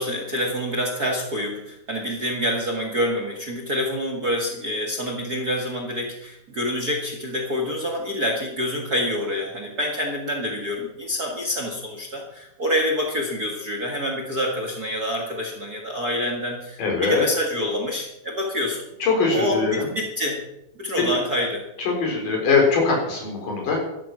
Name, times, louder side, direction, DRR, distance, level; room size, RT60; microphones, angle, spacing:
voice 1, 0.0-18.9 19.3-20.4 20.8-21.7, left 1 dB, 35° right, 2 dB, 1.7 m, -27 dB
voice 2, 16.8-17.2 19.0-19.9 21.0-21.1 21.8-23.8, left 4 dB, 75° left, 0 dB, 5.8 m, -21 dB
13.0 x 12.0 x 6.1 m, 0.85 s
omnidirectional pair, 3.8 m